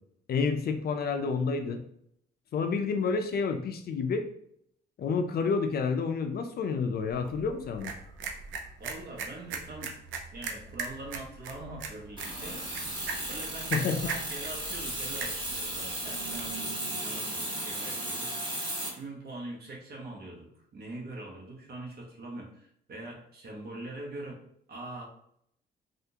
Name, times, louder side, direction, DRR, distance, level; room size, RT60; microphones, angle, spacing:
voice 1, 0.3-1.8 2.5-4.3 5.0-7.9 13.7-14.0, left 5 dB, 50° left, 7 dB, 0.4 m, -29 dB
sound 1, 7.1-16.6, right 4 dB, 75° right, 0.5 m, -40 dB
voice 2, 8.8-10.0 10.3-12.6 13.3-18.3 18.9-24.4 24.7-25.0, right 2 dB, 50° right, -2 dB, 1.1 m, -43 dB
sound 2, 12.2-18.9, right 1 dB, 25° right, 1.5 m, -35 dB
3.4 x 2.5 x 2.8 m, 0.70 s
cardioid pair, 90°, 20 cm